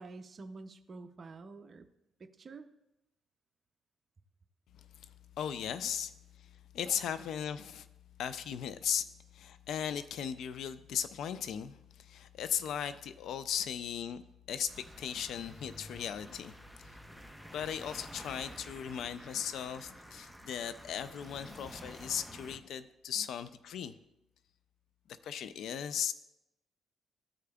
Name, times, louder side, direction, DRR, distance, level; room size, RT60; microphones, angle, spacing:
voice 1, 0.0-1.9 2.2-2.7, right 3 dB, 40° right, 6 dB, 0.5 m, -48 dB
voice 2, 4.8-6.1 6.4-7.9 8.2-17.0 17.5-24.0 25.1-26.1, left 8 dB, 75° left, 13 dB, 0.3 m, -37 dB
sound 1, 14.7-22.6, equal, 5° left, 0.6 m, -50 dB
14.5 x 4.9 x 2.3 m, 0.90 s
cardioid pair, 90°, 0 cm